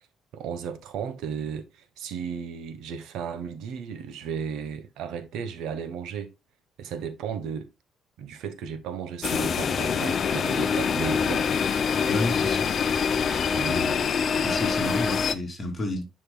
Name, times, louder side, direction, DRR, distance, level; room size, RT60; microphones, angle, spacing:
voice 1, 0.3-6.3 6.8-7.7 8.2-11.5 13.5-13.8, right 7 dB, 75° right, 1.1 m, -34 dB
sound 1, 9.2-15.3, left 6 dB, 35° left, 0.6 m, -25 dB
voice 2, 12.1-12.7 13.6-13.9 14.4-16.0, left 1 dB, 15° left, 2.7 m, -30 dB
10.5 x 5.4 x 2.2 m
cardioid pair, 165°, 0 cm